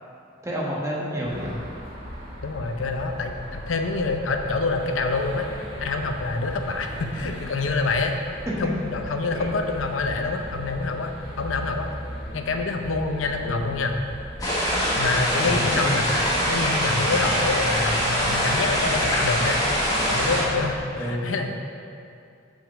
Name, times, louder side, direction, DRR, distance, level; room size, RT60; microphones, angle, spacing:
voice 1, 0.4-1.6 9.3-9.5 13.4-13.7 15.4-15.6 21.0-21.2, equal, 15° right, -5 dB, 1.3 m, -29 dB
sound 1, 1.2-20.8, equal, 30° right, 2.0 m, -38 dB
voice 2, 2.4-5.5 5.8-8.1 8.6-11.9 12.3-14.0 15.0-16.1 16.5-19.6 20.1-21.5, left 3 dB, 80° left, 4 dB, 0.7 m, -26 dB
sound 2, 14.4-20.4, equal, 20° left, 1.4 m, -23 dB
6.4 x 5.1 x 6.9 m, 2.5 s
head